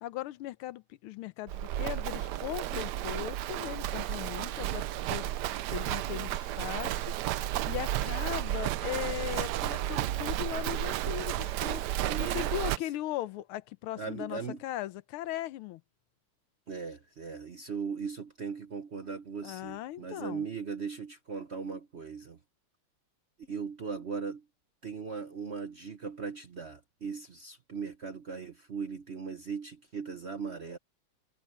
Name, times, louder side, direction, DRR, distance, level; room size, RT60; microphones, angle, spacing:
voice 1, 0.0-5.3 5.7-7.1 7.7-11.8 12.2-15.8 19.4-20.4, left 14 dB, 90° left, 1.6 m, -38 dB
Livestock farm animals working animals, 1.5-12.8, right 13 dB, 75° right, 0.9 m, -32 dB
voice 2, 12.0-12.6 14.0-14.6 16.7-22.4 23.5-24.4 24.8-30.8, right 5 dB, 45° right, 0.9 m, -38 dB
omnidirectional pair, 2.3 m